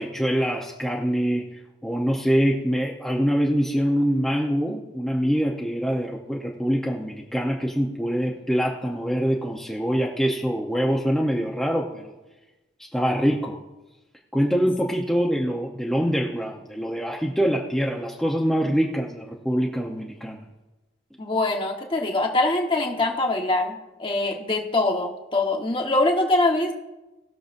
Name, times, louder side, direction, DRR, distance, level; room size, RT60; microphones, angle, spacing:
voice 1, 0.0-1.4 1.8-12.1 12.9-13.6 14.3-20.4, equal, ahead, -2 dB, 0.8 m, -24 dB
voice 2, 21.2-26.7, left 2 dB, 25° left, 2 dB, 1.2 m, -23 dB
19.5 x 6.8 x 2.6 m, 1.1 s
head